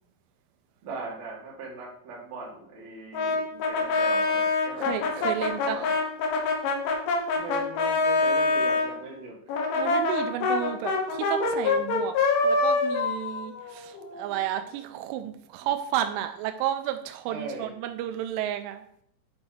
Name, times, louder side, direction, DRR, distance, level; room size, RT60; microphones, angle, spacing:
voice 1, 0.8-3.4 3.7-6.0 7.4-9.4 15.1-15.2 15.6-15.7 17.3-17.7, right 3 dB, 55° right, -4 dB, 3.7 m, -39 dB
Brass instrument, 3.1-8.9 9.5-14.3, left 3 dB, 80° left, 3.6 m, -25 dB
voice 2, 4.8-5.8 9.8-12.2 12.4-18.8, right 11 dB, 90° right, 7 dB, 3.1 m, -32 dB
10.5 x 4.8 x 4.0 m, 0.69 s
omnidirectional pair, 5.5 m